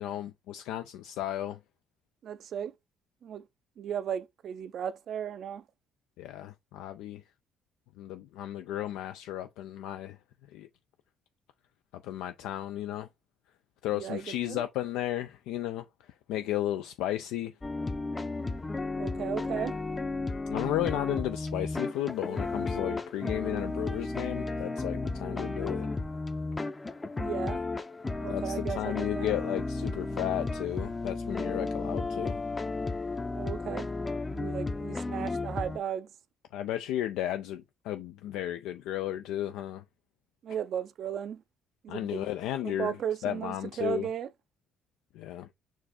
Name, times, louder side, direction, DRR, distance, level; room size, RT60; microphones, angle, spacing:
voice 1, 0.0-1.6 6.2-7.2 8.0-10.7 11.9-13.1 13.8-17.6 20.5-25.9 28.3-32.4 36.5-39.8 41.9-44.1 45.1-45.5, left 13 dB, 80° left, 0.3 m, -34 dB
voice 2, 2.2-2.7 3.2-3.4 3.8-5.6 13.9-14.6 19.0-19.8 27.1-27.6 28.2-29.3 33.3-33.9 34.3-36.1 40.4-41.4 41.8-42.3 42.6-44.3, right 9 dB, 60° right, 0.4 m, -35 dB
sound 1, 17.6-35.8, left 3 dB, 25° left, 0.6 m, -33 dB
4.5 x 2.5 x 4.1 m
supercardioid pair, 65°, 0 cm